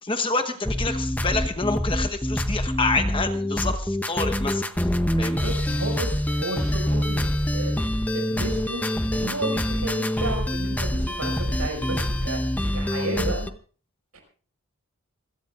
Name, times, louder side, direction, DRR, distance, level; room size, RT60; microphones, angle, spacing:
voice 1, 0.0-5.5, left 3 dB, 25° left, 7 dB, 1.1 m, -28 dB
sound 1, 0.6-13.5, left 1 dB, 5° left, 0.7 m, -25 dB
voice 2, 5.1-7.8 8.1-8.9 9.1-12.5 12.7-13.5 14.1-14.2, right 2 dB, 80° right, 3 dB, 5.7 m, -32 dB
26.5 x 17.0 x 2.5 m, 0.41 s
head